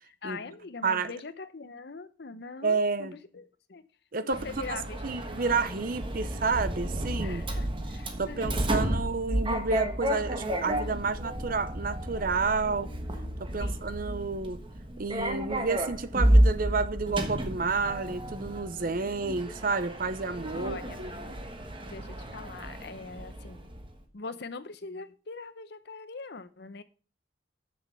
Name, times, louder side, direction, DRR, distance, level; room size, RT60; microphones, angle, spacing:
voice 1, 0.0-3.8 4.2-5.3 7.2-8.8 13.6-14.0 19.0-19.1 20.5-21.5 21.9-23.7 24.1-26.8, left 4 dB, 55° left, 0.7 m, -43 dB
voice 2, 2.6-3.2 4.1-4.4 4.7-7.4 8.2-12.9 13.4-14.6 15.0-21.1, right 4 dB, 45° right, 0.6 m, -30 dB
Sliding door, 4.3-23.9, right 1 dB, 25° right, 1.2 m, -31 dB
7.4 x 7.1 x 5.8 m
head